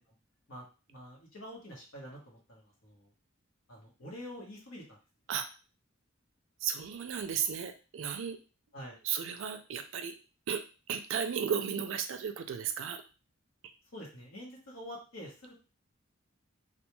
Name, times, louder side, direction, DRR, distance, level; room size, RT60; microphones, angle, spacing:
voice 1, 0.5-3.1 3.7-4.8 8.7-9.0 13.9-15.5, equal, 85° left, -2 dB, 1.0 m, -46 dB
voice 2, 6.6-8.4 9.0-10.2 10.5-10.6 10.9-13.0, right 7 dB, 65° right, 8 dB, 0.4 m, -34 dB
2.3 x 2.2 x 3.0 m, 0.33 s
head